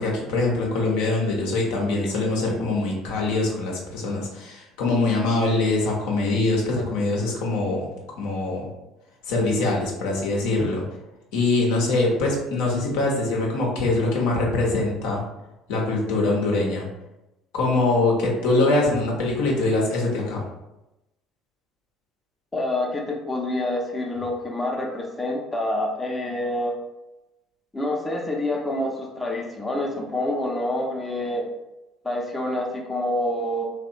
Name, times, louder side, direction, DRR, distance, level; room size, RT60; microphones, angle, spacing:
voice 1, 0.0-7.9 8.2-8.7 9.2-10.8 11.3-15.2 15.7-16.9 17.5-20.4, left 2 dB, 70° left, -2 dB, 0.6 m, -23 dB
voice 2, 22.5-26.7 27.7-31.5 32.0-33.6, left 1 dB, 15° left, -1 dB, 0.5 m, -27 dB
2.7 x 2.1 x 2.4 m, 0.95 s
hypercardioid pair, 60°, 0 cm